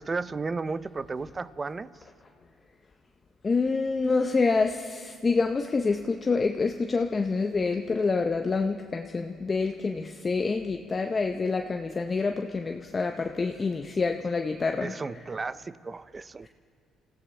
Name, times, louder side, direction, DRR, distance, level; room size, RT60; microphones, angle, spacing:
voice 1, 0.0-1.9 14.8-16.5, right 4 dB, 30° right, 16 dB, 0.5 m, -34 dB
voice 2, 3.4-14.9, left 4 dB, 30° left, 5 dB, 0.6 m, -27 dB
28.0 x 15.5 x 3.3 m, 2.2 s
cardioid pair, 95°, 0 cm